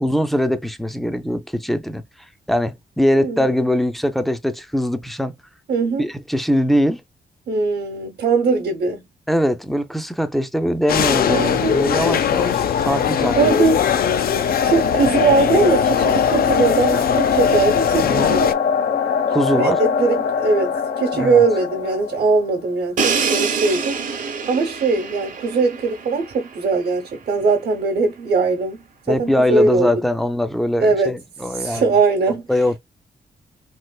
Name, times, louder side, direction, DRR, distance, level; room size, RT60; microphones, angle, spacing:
voice 1, 0.0-2.0 2.5-5.3 6.0-7.0 9.3-13.5 18.0-18.3 19.3-19.8 21.1-21.5 29.1-31.9 32.5-32.8, equal, ahead, 0.4 m, -21 dB
voice 2, 3.2-3.5 5.7-6.1 7.5-9.0 11.3-11.7 13.2-13.8 14.6-18.6 19.3-30.0 30.8-31.1 31.5-32.5, right 4 dB, 80° right, 0.9 m, -20 dB
sound 1, 10.9-18.5, left 8 dB, 65° left, 0.4 m, -21 dB
sound 2, 11.8-22.6, left 6 dB, 90° left, 0.8 m, -23 dB
Crash cymbal, 23.0-26.8, right 5 dB, 55° right, 0.8 m, -25 dB
3.2 x 2.9 x 2.2 m
wide cardioid pair, 160°, 16 cm